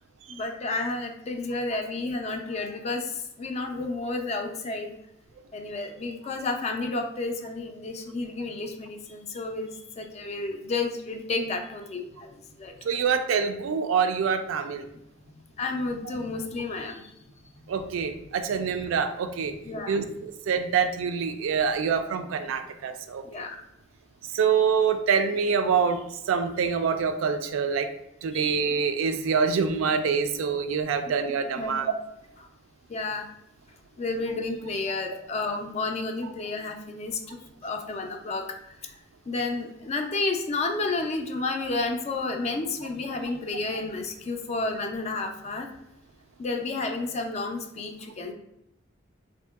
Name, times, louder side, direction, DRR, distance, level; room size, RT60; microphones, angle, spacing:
voice 1, 0.3-4.9 5.5-12.3 12.6-12.7 15.3-17.1 19.6-20.0 23.2-23.6 28.3-28.6 31.6-31.9 32.9-33.3 34.0-38.5 38.8-38.9 39.3-45.7 46.4-48.3, left 3 dB, 35° left, 5 dB, 0.3 m, -31 dB
voice 2, 12.8-14.8 17.7-19.5 19.9-23.4 24.2-26.0 26.3-27.9 28.2-31.9, right 6 dB, 85° right, 8 dB, 0.3 m, -25 dB
3.6 x 2.6 x 2.3 m, 0.81 s
head